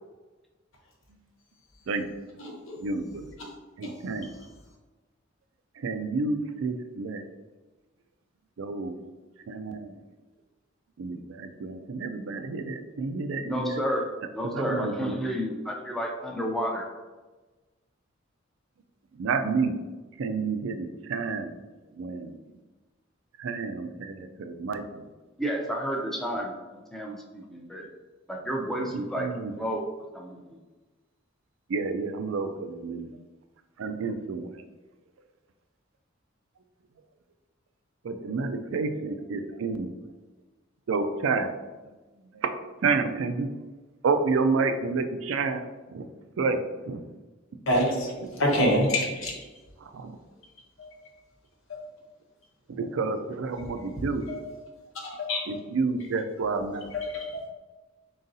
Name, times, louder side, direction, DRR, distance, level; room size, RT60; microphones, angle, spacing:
voice 1, 2.8-3.2 3.8-4.3 5.8-7.2 8.6-9.0 9.5-10.0 11.0-13.8 14.4-15.1 19.2-19.8 20.2-21.5 22.0-22.3 23.4-25.1 28.9-29.5 31.7-33.1 33.8-34.6 38.0-39.9 40.9-41.5 42.3-42.5 42.8-43.5 44.0-46.1 46.4-46.6 46.9-47.0 48.2-48.7 49.8-50.2 52.7-54.3 55.5-56.8, right 4 dB, 85° right, 8 dB, 0.4 m, -29 dB
voice 2, 13.4-14.1 14.3-16.9 25.4-27.9 28.3-29.3 29.5-29.8 30.1-30.6, equal, ahead, -1 dB, 0.5 m, -31 dB
voice 3, 47.7-48.1 48.4-49.3 54.3-54.4 55.3-55.5 57.1-57.4, equal, 85° left, 0 dB, 1.0 m, -25 dB
3.9 x 3.8 x 2.6 m, 1.2 s
head